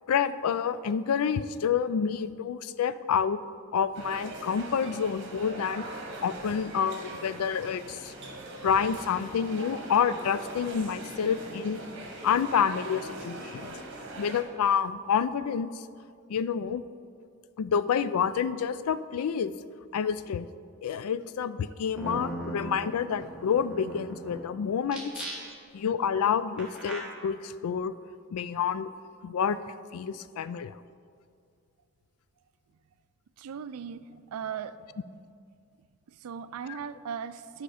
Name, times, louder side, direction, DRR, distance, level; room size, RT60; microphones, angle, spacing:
voice 1, 0.1-3.4 3.7-5.9 6.2-8.1 8.6-11.8 12.2-13.8 14.2-15.7 16.3-16.8 17.6-19.5 19.9-20.5 20.8-25.3 25.7-27.9 28.3-28.9 29.2-29.6 29.9-30.8 36.7-36.8, left 7 dB, 80° left, 15 dB, 0.3 m, -28 dB
sound 1, 3.9-14.4, right 1 dB, 50° right, 1.2 m, -41 dB
sound 2, 21.7-21.8 22.0-24.4 24.8-25.7 26.6-27.0, right 1 dB, 5° right, 1.4 m, -38 dB
voice 2, 33.4-34.8 35.1-35.2 36.1-37.6, right 7 dB, 80° right, 14 dB, 0.4 m, -38 dB
10.5 x 5.6 x 4.9 m, 2.2 s
head